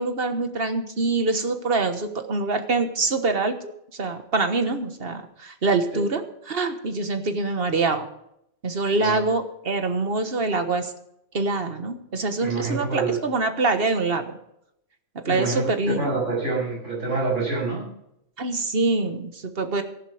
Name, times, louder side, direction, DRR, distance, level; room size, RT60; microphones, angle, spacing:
voice 1, 0.0-8.1 8.6-10.9 11.3-14.4 15.1-16.1 18.4-19.8, right 3 dB, 50° right, 8 dB, 1.5 m, -25 dB
voice 2, 12.4-13.2 15.2-17.9, right 3 dB, 85° right, -3 dB, 7.7 m, -26 dB
14.5 x 11.5 x 5.0 m, 0.76 s
omnidirectional pair, 1.2 m